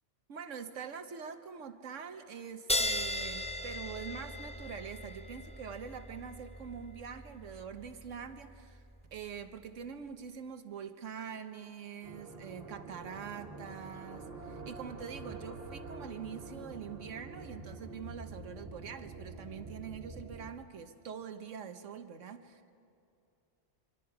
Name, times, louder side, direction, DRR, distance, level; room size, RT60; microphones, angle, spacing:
voice 1, 0.3-8.8 9.1-22.6, right 7 dB, 80° right, 8 dB, 1.4 m, -44 dB
sound 1, 2.7-9.7, left 1 dB, 5° left, 0.7 m, -38 dB
sound 2, 12.0-20.5, right 3 dB, 50° right, 2.0 m, -46 dB
26.0 x 24.5 x 4.8 m, 2.6 s
omnidirectional pair, 1.3 m